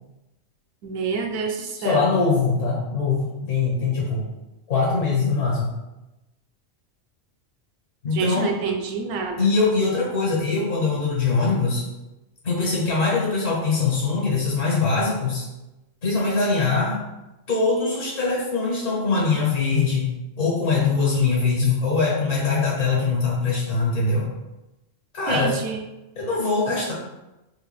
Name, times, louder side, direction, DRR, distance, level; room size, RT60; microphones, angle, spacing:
voice 1, 0.8-2.1 8.1-9.5 25.3-25.8, right 5 dB, 85° right, 2 dB, 1.0 m, -27 dB
voice 2, 1.8-4.2 4.7-5.7 8.0-8.6 9.4-11.8 12.4-15.5 16.0-17.0 17.5-20.1 20.4-24.3 25.1-25.6 26.1-26.9, left 4 dB, 70° left, -4 dB, 1.6 m, -22 dB
3.7 x 2.3 x 3.1 m, 1.0 s
omnidirectional pair, 1.4 m